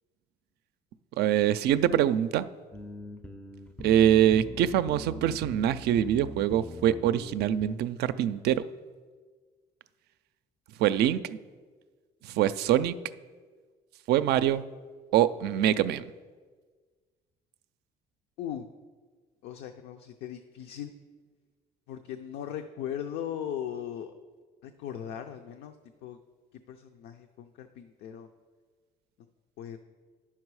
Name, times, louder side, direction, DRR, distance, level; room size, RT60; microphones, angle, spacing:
voice 1, 1.2-2.5 3.8-8.6 10.8-11.4 12.2-12.9 14.1-14.6 15.1-16.0, right 11 dB, 75° right, 13 dB, 0.4 m, -24 dB
sound 1, 2.7-7.8, left 1 dB, 5° left, 0.4 m, -42 dB
voice 2, 19.4-20.9 21.9-24.1 24.6-25.8 26.0-26.2 26.7-28.3 29.6-29.8, left 10 dB, 80° left, 6 dB, 0.5 m, -38 dB
9.6 x 5.8 x 4.7 m, 1.5 s
cardioid pair, 110°, 17 cm